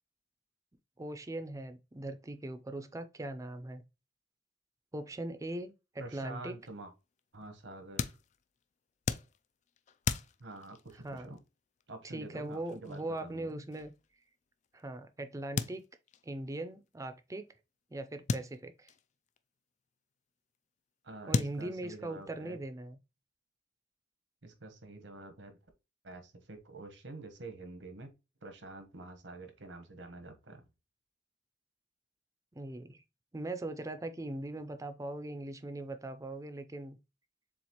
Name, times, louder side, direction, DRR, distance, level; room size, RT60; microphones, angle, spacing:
voice 1, 1.0-3.8 4.9-6.6 11.0-11.4 12.0-13.9 14.7-15.8 16.2-17.5 17.9-18.9 21.3-23.0 32.6-33.0 33.3-37.0, right 2 dB, 20° right, 0.5 m, -40 dB
voice 2, 6.0-6.9 7.3-8.2 10.4-11.4 11.9-13.6 21.0-22.6 24.4-25.5 26.0-28.1 28.4-30.6, right 2 dB, 85° right, 1.1 m, -47 dB
sound 1, 6.6-14.9 15.5-16.3 16.6-16.7 16.9-17.0 18.3-19.4 20.5-20.6 21.3-22.2, left 5 dB, 40° left, 0.3 m, -38 dB
7.0 x 2.4 x 3.0 m
head